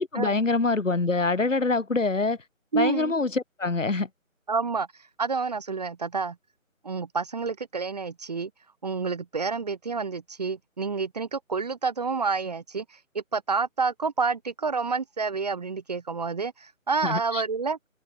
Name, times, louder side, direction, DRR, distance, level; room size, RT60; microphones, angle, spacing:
voice 1, 0.0-2.4 2.7-4.1 17.0-17.4, left 3 dB, 65° left, 4.8 m, -25 dB
voice 2, 2.7-3.1 4.5-4.9 5.2-6.3 6.8-8.5 8.8-12.8 13.1-17.8, right 4 dB, 30° right, 1.6 m, -28 dB
open air
figure-of-eight pair, 160°, 41 cm